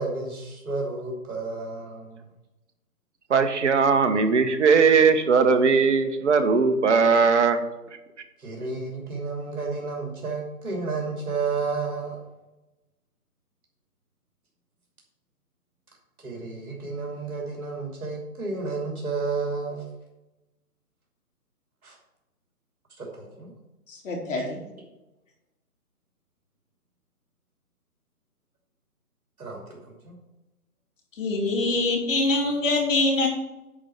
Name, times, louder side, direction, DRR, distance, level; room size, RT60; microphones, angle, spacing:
voice 1, 0.0-2.2 8.4-12.2 16.2-19.8 21.8-22.0 23.0-23.5 24.4-24.5 29.4-30.1, right 4 dB, 65° right, -1 dB, 2.7 m, -31 dB
voice 2, 3.3-7.6, right 5 dB, 50° right, 7 dB, 1.2 m, -19 dB
voice 3, 23.9-24.6 31.2-33.3, left 2 dB, 55° left, 0 dB, 3.2 m, -24 dB
10.0 x 4.6 x 6.7 m, 1.0 s
figure-of-eight pair, 150°, 46 cm